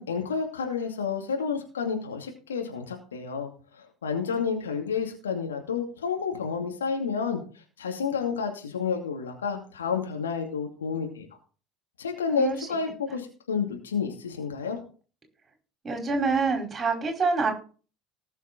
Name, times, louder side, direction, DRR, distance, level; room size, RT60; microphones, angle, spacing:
voice 1, 0.0-3.5 3.8-7.4 7.8-11.3 12.0-14.8, left 6 dB, 75° left, 2 dB, 2.6 m, -30 dB
voice 2, 15.8-17.5, right 4 dB, 20° right, 3 dB, 4.8 m, -26 dB
19.0 x 6.4 x 4.3 m, 0.38 s
figure-of-eight pair, 65°, 0 cm